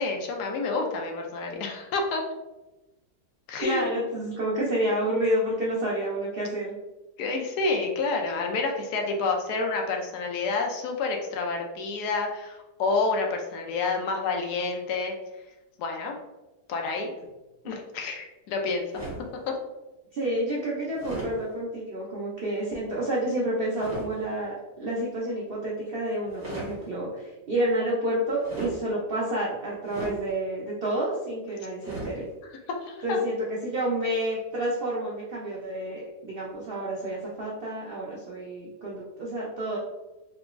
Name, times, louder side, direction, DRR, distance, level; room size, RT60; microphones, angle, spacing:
voice 1, 0.0-2.2 3.5-3.8 7.2-15.1 15.8-16.1 16.7-17.1 17.6-18.8 19.5-19.6 32.4-33.2, left 3 dB, 75° left, 2 dB, 1.1 m, -29 dB
voice 2, 3.6-6.7 17.6-17.7 20.1-32.3 33.0-39.8, right 1 dB, 75° right, -4 dB, 0.5 m, -29 dB
sound 1, 18.9-19.3 20.9-21.3 23.7-24.1 26.3-26.7 28.4-28.8 29.8-30.2 31.8-32.2, right 2 dB, 40° right, 1.6 m, -36 dB
3.5 x 2.9 x 2.4 m, 1.1 s
omnidirectional pair, 1.8 m